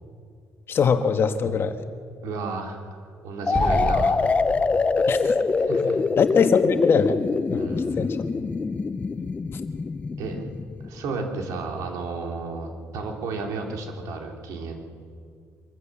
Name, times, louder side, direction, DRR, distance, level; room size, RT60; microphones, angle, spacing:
voice 1, 0.7-1.8 5.1-5.3 6.2-7.2 7.5-7.7 8.0-8.1, left 6 dB, 45° left, 8 dB, 1.4 m, -21 dB
voice 2, 2.2-2.8 3.2-4.2 5.6-6.0 7.5-8.1 10.2-10.4 10.8-14.8, right 4 dB, 85° right, 2 dB, 3.2 m, -32 dB
sound 1, 3.5-11.1, left 4 dB, 25° left, 0.8 m, -24 dB
Explosion, 3.5-6.8, right 1 dB, 10° right, 0.9 m, -32 dB
24.0 x 15.0 x 7.4 m, 2.2 s
cardioid pair, 115°, 6 cm